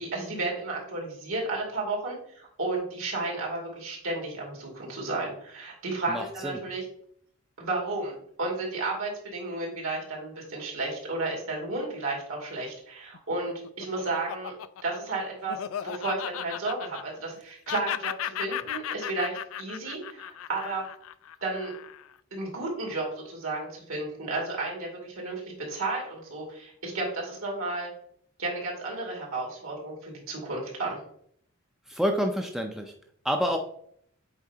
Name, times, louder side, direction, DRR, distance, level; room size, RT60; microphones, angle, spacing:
voice 1, 0.0-6.9 7.6-14.5 14.8-20.8 21.4-21.7 22.3-25.4 25.7-27.9 28.4-31.0, right 2 dB, 75° right, -2 dB, 2.4 m, -33 dB
voice 2, 6.1-6.6 31.9-32.9 33.2-33.6, equal, ahead, 3 dB, 0.4 m, -28 dB
Laughter, 13.1-17.4 17.7-22.1, left 10 dB, 70° left, 0.3 m, -36 dB
8.1 x 4.4 x 2.9 m, 0.65 s
head